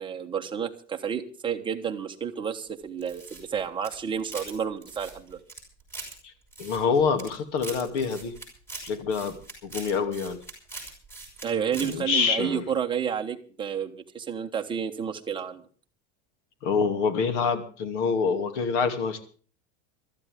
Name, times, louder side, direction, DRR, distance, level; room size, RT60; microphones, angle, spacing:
voice 1, 0.0-5.4 11.4-15.6, right 7 dB, 15° right, 4 dB, 1.1 m, -31 dB
sound 1, 3.0-4.6 4.8-6.1 6.5-7.3 7.6-11.5 11.7-12.0, right 3 dB, 5° left, 5.7 m, -41 dB
voice 2, 6.6-8.3 8.8-9.4 9.6-10.4 11.8-12.6 16.6-19.2, left 5 dB, 75° left, 8 dB, 2.7 m, -26 dB
22.5 x 13.5 x 3.6 m, 0.40 s
supercardioid pair, 160°, 36 cm